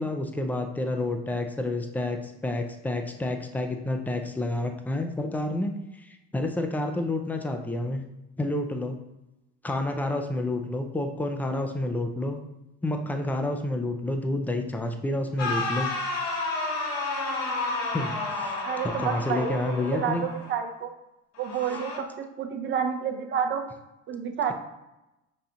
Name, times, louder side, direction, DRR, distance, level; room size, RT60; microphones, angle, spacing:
voice 1, 0.0-8.0 8.4-9.0 9.6-12.4 12.8-15.9 17.9-18.5 19.0-20.2, left 2 dB, 5° left, 5 dB, 0.4 m, -29 dB
sound 1, 15.4-20.5 21.4-22.0, left 2 dB, 55° left, 1.2 m, -31 dB
voice 2, 18.6-20.9 21.4-23.6 24.1-24.5, right 7 dB, 35° right, 4 dB, 0.6 m, -29 dB
5.7 x 2.4 x 3.9 m, 0.95 s
cardioid pair, 130°, 32 cm